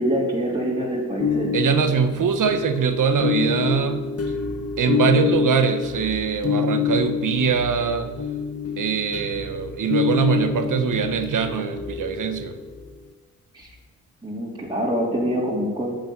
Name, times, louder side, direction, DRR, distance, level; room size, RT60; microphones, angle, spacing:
voice 1, 0.0-1.5 13.5-13.7 14.2-15.9, equal, 15° right, -5 dB, 3.5 m, -25 dB
sound 1, 1.2-12.8, left 5 dB, 45° left, 1.4 m, -26 dB
voice 2, 1.5-4.1 4.8-8.1 8.8-12.5, right 6 dB, 65° right, 8 dB, 1.3 m, -22 dB
9.2 x 7.2 x 8.8 m, 1.2 s
cardioid pair, 75°, 33 cm